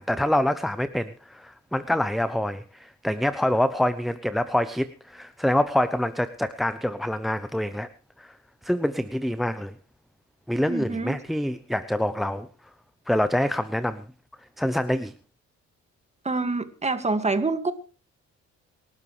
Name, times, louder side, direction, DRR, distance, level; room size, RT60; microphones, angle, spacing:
voice 1, 0.0-7.9 8.2-8.4 8.6-9.7 10.5-12.5 13.1-14.0 14.6-15.1, left 1 dB, ahead, 13 dB, 0.7 m, -26 dB
voice 2, 10.7-11.2 16.2-17.7, right 3 dB, 20° right, 9 dB, 2.1 m, -26 dB
26.5 x 12.5 x 3.3 m, 0.34 s
cardioid pair, 90°, 30 cm